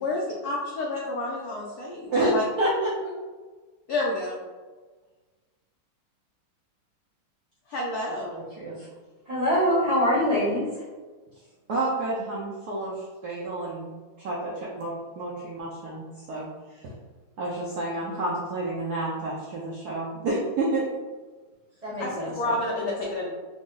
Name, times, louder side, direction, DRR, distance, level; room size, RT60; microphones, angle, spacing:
voice 1, 0.0-2.4 3.9-4.4 7.7-8.4 22.0-23.3, left 2 dB, 85° left, -3 dB, 0.8 m, -29 dB
voice 2, 2.1-3.1 8.3-8.9 11.7-13.9 14.2-16.5 16.8-16.9 17.4-20.8, right 2 dB, 75° right, -6 dB, 0.9 m, -29 dB
voice 3, 9.2-10.8 21.8-22.6, equal, 30° right, -8 dB, 0.8 m, -24 dB
3.5 x 2.0 x 3.7 m, 1.3 s
omnidirectional pair, 2.3 m